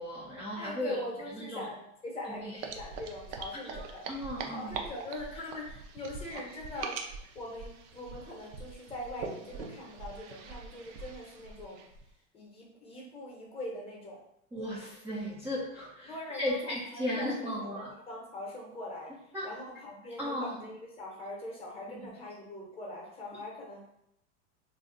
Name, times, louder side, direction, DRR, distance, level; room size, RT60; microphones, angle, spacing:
voice 1, 0.0-1.0 1.3-1.7 2.3-2.6 3.6-4.7 14.5-17.9 19.3-19.5 20.2-20.7 21.9-22.0, equal, 5° right, -8 dB, 0.4 m, -36 dB
voice 2, 0.5-4.0 4.5-7.0 7.3-11.8 12.3-14.2 16.1-19.1 19.4-23.8, left 1 dB, 15° left, -2 dB, 0.7 m, -42 dB
sound 1, 2.6-12.1, right 5 dB, 70° right, 0.6 m, -43 dB
2.6 x 2.2 x 3.7 m, 0.77 s
supercardioid pair, 140°, 37 cm